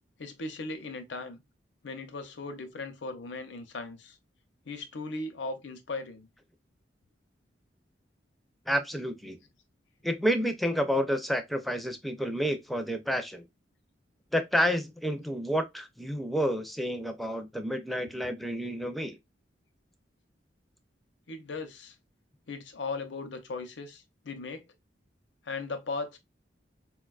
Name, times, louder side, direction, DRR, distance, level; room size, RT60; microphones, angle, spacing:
voice 1, 0.2-1.4 1.8-4.2 4.6-6.3 10.3-10.5 21.3-22.0 22.5-24.7 25.4-26.2, left 3 dB, 75° left, 0.6 m, -38 dB
voice 2, 8.7-9.4 10.0-13.4 14.3-19.2, equal, ahead, 0.4 m, -29 dB
4.5 x 2.2 x 2.3 m
head